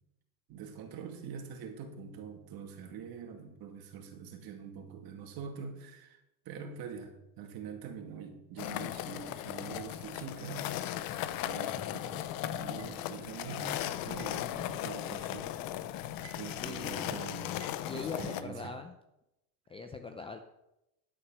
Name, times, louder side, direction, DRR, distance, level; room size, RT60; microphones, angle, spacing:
voice 1, 0.5-6.2 6.5-10.8 11.4-15.5 16.4-17.5 17.9-18.8, right 6 dB, 45° right, 4 dB, 2.4 m, -44 dB
sound 1, 8.6-18.4, left 12 dB, 45° left, 0.7 m, -37 dB
sound 2, 12.0-13.3 14.2-15.6 15.9-16.8 17.6-18.5, right 10 dB, 80° right, 1.7 m, -58 dB
voice 2, 16.6-17.2 17.8-18.9 19.7-20.4, left 4 dB, 10° left, 6 dB, 0.5 m, -41 dB
11.0 x 6.5 x 6.2 m, 0.87 s
supercardioid pair, 125°, 48 cm